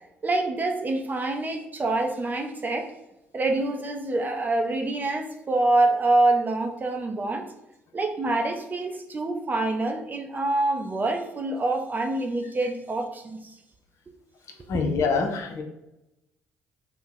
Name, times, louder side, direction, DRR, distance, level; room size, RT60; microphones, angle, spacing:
voice 1, 0.2-2.9 3.3-7.5 7.9-13.4, right 2 dB, 30° right, 4 dB, 0.5 m, -26 dB
voice 2, 14.7-15.6, left 4 dB, 60° left, 3 dB, 0.6 m, -25 dB
2.8 x 2.1 x 3.7 m, 0.90 s
hypercardioid pair, 55°, 6 cm